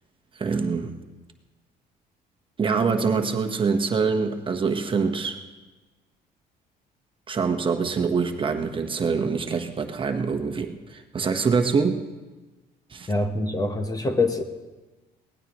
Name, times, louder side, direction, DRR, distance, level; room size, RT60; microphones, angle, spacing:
voice 1, 0.3-0.9 2.6-5.4 7.3-12.0 12.9-13.1, right 5 dB, 30° right, 5 dB, 1.2 m, -25 dB
voice 2, 13.1-14.4, left 2 dB, 20° left, 7 dB, 1.0 m, -24 dB
23.0 x 18.0 x 3.1 m, 1.2 s
cardioid pair, 110°, 17 cm